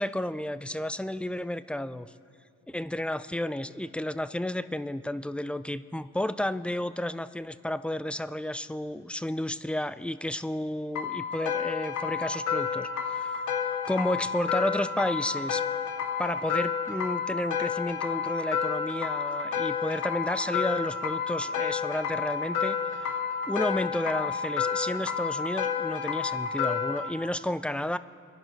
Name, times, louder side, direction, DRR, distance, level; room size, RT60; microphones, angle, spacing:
voice 1, 0.0-2.1 2.7-13.5 13.9-15.6 16.2-22.8 23.1-23.2 23.5-28.0, left 1 dB, 5° left, 14 dB, 0.4 m, -32 dB
sound 1, 11.0-27.1, left 6 dB, 75° left, 1.0 m, -30 dB
26.5 x 11.0 x 4.5 m, 2.4 s
cardioid pair, 90°, 30 cm